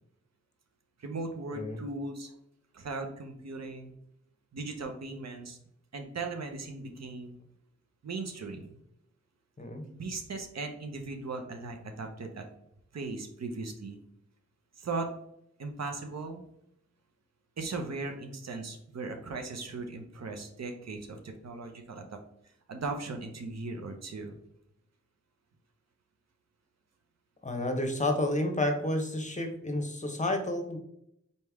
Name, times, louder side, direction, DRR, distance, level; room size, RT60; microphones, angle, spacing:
voice 1, 1.0-2.3 2.7-3.9 4.5-5.6 5.9-7.4 8.0-8.7 9.9-12.4 12.9-14.0 14.8-15.1 15.6-16.4 17.6-22.2 22.7-24.4, right 3 dB, 65° right, 4 dB, 0.8 m, -38 dB
voice 2, 27.4-30.8, left 1 dB, 25° left, 4 dB, 1.0 m, -30 dB
4.2 x 3.3 x 3.5 m, 0.76 s
cardioid pair, 45°, 29 cm